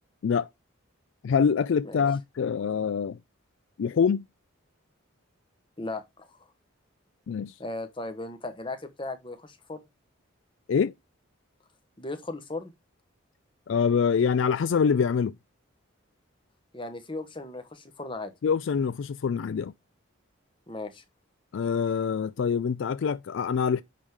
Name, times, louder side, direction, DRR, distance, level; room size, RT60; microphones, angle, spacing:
voice 1, 1.2-3.2 3.8-4.3 7.3-7.5 10.7-10.9 13.7-15.4 18.4-19.7 21.5-23.8, left 6 dB, 60° left, 0.3 m, -25 dB
voice 2, 5.8-6.3 7.6-9.8 12.0-12.7 16.7-18.3 20.7-21.0, left 2 dB, 25° left, 1.1 m, -37 dB
10.0 x 3.6 x 4.8 m
head